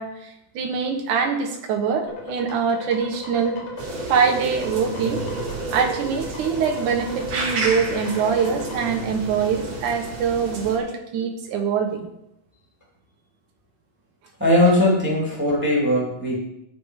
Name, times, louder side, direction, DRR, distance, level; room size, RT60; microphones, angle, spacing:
voice 1, 0.0-3.6 4.1-5.2 5.7-12.1, right 6 dB, 80° right, 2 dB, 2.7 m, -24 dB
sound 1, 2.1-8.9, left 4 dB, 90° left, 3.6 m, -37 dB
sound 2, 3.8-10.8, right 3 dB, 55° right, 2.8 m, -31 dB
voice 2, 14.4-16.4, left 1 dB, 5° right, -3 dB, 2.2 m, -19 dB
13.5 x 5.2 x 4.8 m, 0.84 s
omnidirectional pair, 3.6 m